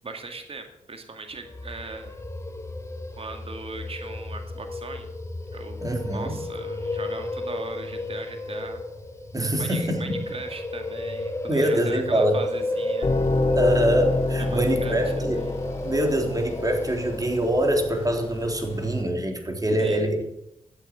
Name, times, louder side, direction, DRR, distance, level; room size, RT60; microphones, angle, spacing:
voice 1, 0.0-2.2 3.1-5.1 5.5-8.8 9.6-13.1 14.4-15.6 19.8-20.1, right 3 dB, 50° right, 5 dB, 2.1 m, -39 dB
sound 1, 1.4-18.4, left 2 dB, 20° left, 2.0 m, -32 dB
voice 2, 5.8-6.4 9.3-10.2 11.5-12.4 13.6-15.4 15.8-20.3, right 1 dB, 30° right, 3 dB, 3.5 m, -24 dB
sound 2, 13.0-19.0, left 2 dB, 50° left, 3.8 m, -29 dB
13.5 x 8.2 x 7.4 m, 0.86 s
cardioid pair, 50°, 13 cm